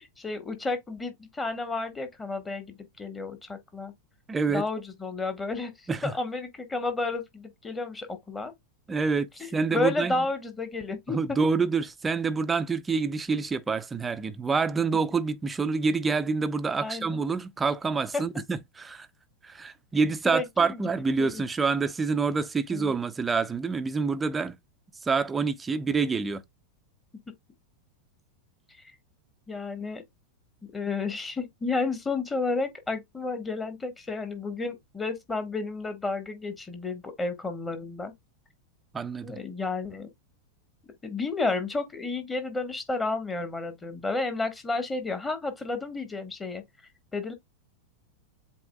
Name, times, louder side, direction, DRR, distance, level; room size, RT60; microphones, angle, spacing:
voice 1, 0.0-3.9 4.5-8.5 9.4-11.4 16.8-17.2 18.1-18.2 20.2-20.8 21.2-21.4 22.7-22.9 29.5-30.0 30.7-38.1 39.2-40.1 41.0-46.6 47.1-47.3, left 3 dB, 15° left, 1.4 m, -31 dB
voice 2, 4.3-4.6 5.9-6.1 8.9-10.3 11.1-19.1 19.4-24.5 25.0-26.4 38.9-39.4, right 4 dB, 15° right, 0.6 m, -27 dB
7.8 x 2.8 x 2.2 m
figure-of-eight pair, 90°, 0 cm